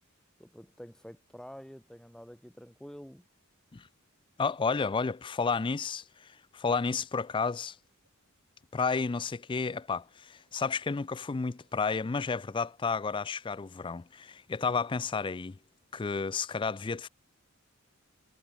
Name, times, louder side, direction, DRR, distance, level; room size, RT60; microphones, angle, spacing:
voice 1, 0.4-3.3, equal, 5° left, 1.1 m, -48 dB
voice 2, 4.4-7.8 8.7-15.6 15.9-17.1, left 5 dB, 25° left, 0.4 m, -31 dB
sound 1, 7.0-12.9, right 2 dB, 60° right, 7.7 m, -77 dB
head